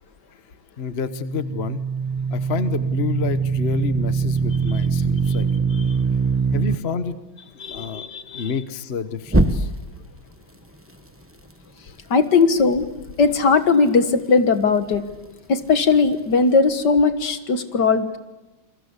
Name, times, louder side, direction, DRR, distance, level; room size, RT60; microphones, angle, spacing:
voice 1, 0.8-1.8 2.3-5.5 6.5-7.2 7.6-8.1 8.3-9.7, left 6 dB, 40° left, 12 dB, 1.1 m, -29 dB
sound 1, 1.0-6.8 9.3-10.0, right 4 dB, 10° right, 0.6 m, -22 dB
voice 2, 7.6-8.5 12.1-12.9 13.2-15.0 15.5-18.2, left 4 dB, 55° left, 11 dB, 2.1 m, -19 dB
28.5 x 22.5 x 8.2 m, 1.1 s
omnidirectional pair, 2.3 m